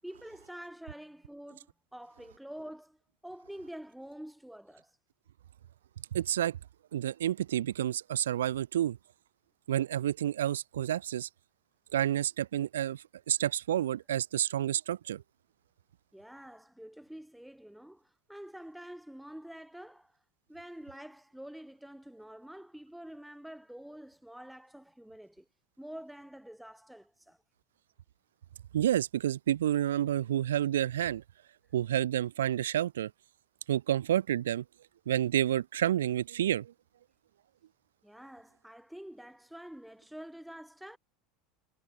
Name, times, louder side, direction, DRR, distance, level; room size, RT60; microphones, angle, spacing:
voice 1, 0.0-5.0 16.1-20.2 20.5-25.5 25.8-27.4 38.0-41.0, right 1 dB, ahead, 7.0 m, -47 dB
voice 2, 6.1-6.6 6.9-9.0 9.7-11.3 11.9-15.2 28.7-31.2 31.7-33.1 33.7-34.6 35.1-36.7, right 11 dB, 70° right, 0.6 m, -29 dB
figure-of-eight pair, 75°, 0 cm